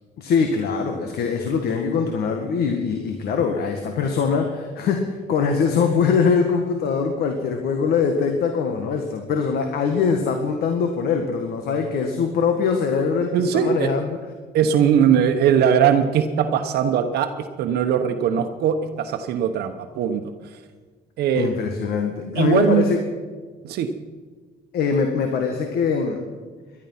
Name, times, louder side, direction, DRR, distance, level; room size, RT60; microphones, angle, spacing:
voice 1, 0.2-14.2 21.3-23.0 24.7-26.2, left 5 dB, 70° left, 5 dB, 1.6 m, -22 dB
voice 2, 13.3-13.9 14.5-20.6 21.2-21.5 22.3-22.9 23.6-23.9, right 8 dB, 75° right, 6 dB, 1.0 m, -20 dB
19.0 x 11.5 x 5.7 m, 1.5 s
cardioid pair, 110°, 17 cm